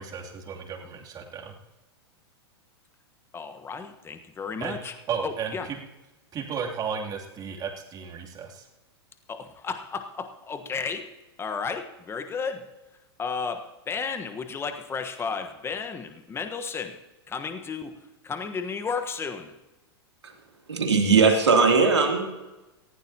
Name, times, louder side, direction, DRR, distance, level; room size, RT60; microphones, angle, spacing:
voice 1, 0.0-1.5 4.6-5.8 6.3-8.6, right 6 dB, 30° right, -1 dB, 2.9 m, -34 dB
voice 2, 3.3-4.9 5.2-5.7 9.3-11.1 11.4-12.7 13.2-17.0 17.3-17.9 18.2-19.6, left 5 dB, 15° left, 8 dB, 1.3 m, -33 dB
voice 3, 20.7-22.2, right 4 dB, 90° right, 1 dB, 2.9 m, -19 dB
19.5 x 15.5 x 2.9 m, 1.0 s
hypercardioid pair, 105°, 14 cm